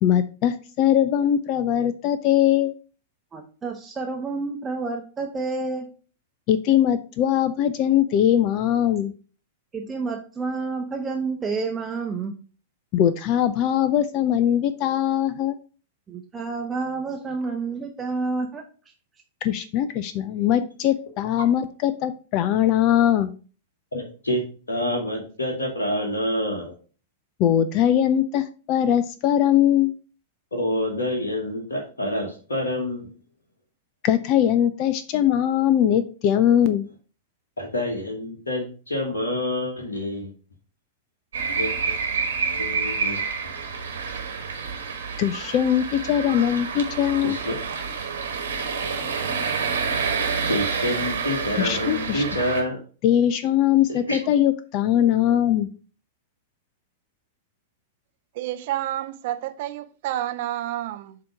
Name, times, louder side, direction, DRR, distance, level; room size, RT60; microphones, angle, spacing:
voice 1, 0.0-2.7 6.5-9.1 12.9-15.6 19.4-23.3 27.4-29.9 34.0-36.8 45.2-47.4 51.6-52.2 53.0-55.7, left 10 dB, 40° left, 0.4 m, -21 dB
voice 2, 3.3-5.9 9.7-12.4 16.1-18.6, right 4 dB, 15° right, 0.8 m, -29 dB
voice 3, 23.9-24.4 24.7-26.7 30.5-33.1 37.6-40.3 41.6-42.0 42.5-43.2 47.2-47.6 50.5-52.8 53.9-54.2, left 1 dB, 75° left, 1.2 m, -27 dB
sound 1, 41.3-52.6, right 5 dB, 65° right, 1.3 m, -28 dB
voice 4, 58.3-61.2, right 13 dB, 50° right, 0.6 m, -29 dB
7.5 x 2.9 x 4.8 m
figure-of-eight pair, 95°, 0 cm